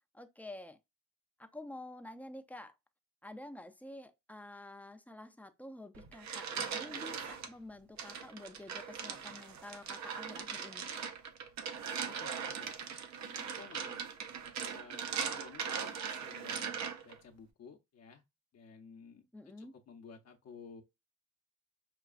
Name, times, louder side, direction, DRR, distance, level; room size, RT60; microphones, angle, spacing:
voice 1, 0.1-0.8 1.4-2.7 3.2-10.9 19.3-19.7, left 1 dB, 5° left, 0.5 m, -49 dB
sound 1, 5.9-7.5 8.0-17.2, right 7 dB, 65° right, 0.7 m, -40 dB
voice 2, 11.8-12.8 13.1-14.1 14.6-16.8 17.0-18.2 18.5-19.2 19.6-20.8, left 5 dB, 55° left, 0.7 m, -54 dB
5.9 x 2.3 x 2.4 m
cardioid pair, 90°, 30 cm